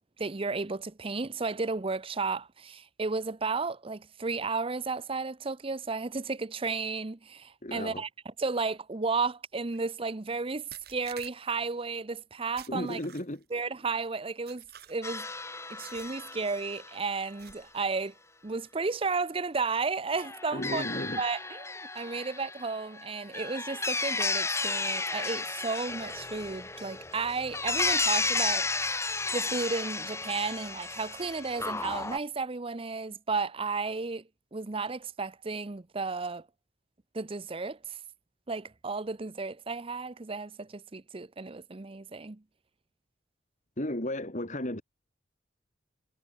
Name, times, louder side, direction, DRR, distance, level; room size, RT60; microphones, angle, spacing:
voice 1, 0.2-8.1 8.4-13.0 13.5-15.3 15.7-18.1 18.4-20.8 21.2-28.7 29.3-34.2 34.5-36.5 37.1-38.0 38.5-42.4, right 4 dB, 30° right, 0.7 m, -33 dB
voice 2, 7.6-8.0 12.7-13.4 20.5-21.2 43.8-44.8, left 1 dB, 40° left, 3.5 m, -34 dB
sound 1, 9.7-9.9 10.7-11.7 12.6-13.5 14.5-15.2 15.8-16.2 16.5-16.8 17.4-17.8, right 9 dB, 55° right, 6.0 m, -51 dB
sound 2, 15.0-17.0 20.1-32.2, left 3 dB, 15° left, 2.8 m, -33 dB
head